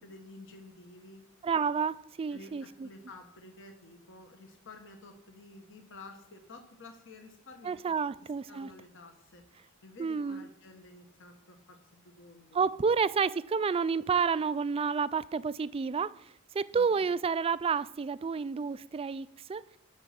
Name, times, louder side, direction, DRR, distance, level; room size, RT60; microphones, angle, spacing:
voice 1, 0.0-1.2 2.3-8.0 8.5-12.6 16.7-17.0, left 2 dB, 60° left, 1.4 m, -51 dB
voice 2, 1.4-2.9 7.6-8.7 10.0-10.4 12.5-16.2 16.5-19.6, right 5 dB, 25° right, 0.3 m, -30 dB
11.5 x 6.3 x 7.5 m
head